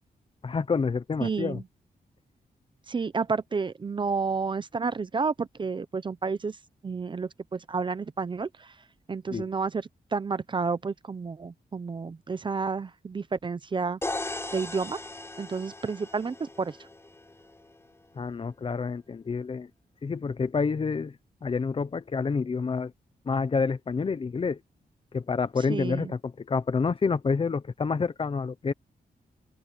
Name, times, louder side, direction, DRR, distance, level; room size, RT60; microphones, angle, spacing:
voice 1, 0.4-1.6 9.3-9.5 18.2-19.7 20.0-21.2 21.4-22.9 23.2-24.6 25.1-28.7, left 5 dB, 35° left, 0.8 m, -28 dB
voice 2, 1.2-1.6 2.9-6.6 6.8-8.7 9.1-14.0 14.5-15.0 15.4-16.8 25.7-26.1, right 5 dB, 30° right, 0.6 m, -30 dB
sound 1, 14.0-17.9, left 2 dB, 15° left, 5.3 m, -38 dB
open air
wide cardioid pair, 175°, 17 cm